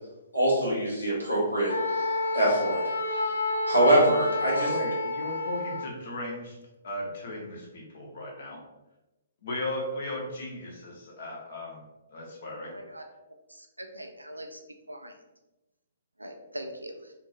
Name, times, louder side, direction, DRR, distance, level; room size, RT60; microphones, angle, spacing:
voice 1, 0.3-2.8 3.1-3.3 3.7-4.7, right 1 dB, 85° left, -5 dB, 1.2 m, -24 dB
Wind instrument woodwind instrument, 1.7-6.0, left 2 dB, 70° left, 0.3 m, -29 dB
voice 2, 4.5-6.6 6.8-8.6 9.4-12.8, left 1 dB, 50° left, -1 dB, 0.8 m, -36 dB
voice 3, 12.6-13.0 13.5-14.6 14.9-15.2 16.2-17.1, right 1 dB, 85° right, 4 dB, 0.4 m, -42 dB
2.9 x 2.7 x 2.3 m, 1.0 s
figure-of-eight pair, 120°, 0 cm